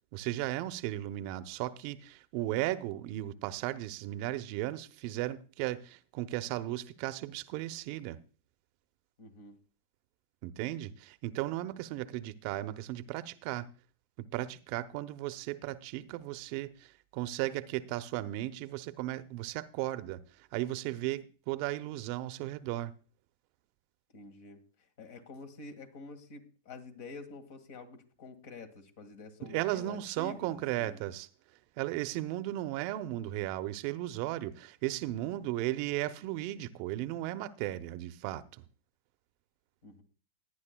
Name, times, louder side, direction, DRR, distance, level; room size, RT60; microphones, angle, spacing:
voice 1, 0.1-8.2 10.4-13.7 14.2-22.9 29.4-31.3 31.8-38.6, right 15 dB, 55° right, 0.7 m, -36 dB
voice 2, 9.2-9.6 24.1-24.6 25.0-31.0 39.8-40.0, left 3 dB, 60° left, 1.8 m, -48 dB
17.5 x 9.8 x 2.2 m
hypercardioid pair, 105°, 0 cm